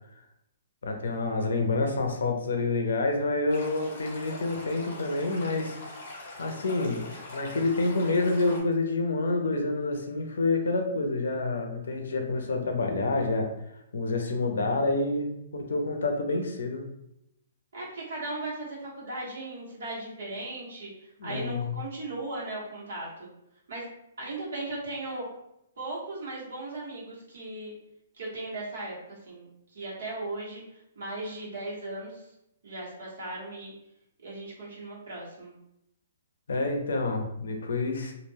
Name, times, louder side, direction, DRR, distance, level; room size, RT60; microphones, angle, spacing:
voice 1, 0.8-5.8 6.2-13.5 13.9-16.8 21.2-21.8 36.5-38.1, left 3 dB, 75° left, 4 dB, 0.5 m, -28 dB
Stream, 3.5-8.6, left 2 dB, 40° left, 1.0 m, -42 dB
voice 2, 17.7-23.3 23.7-23.9 24.2-25.3 25.8-27.7 28.1-32.3 32.6-33.7 34.2-35.6, right 2 dB, 55° right, -5 dB, 1.1 m, -37 dB
2.4 x 2.2 x 3.3 m, 0.81 s
hypercardioid pair, 180°, 0 cm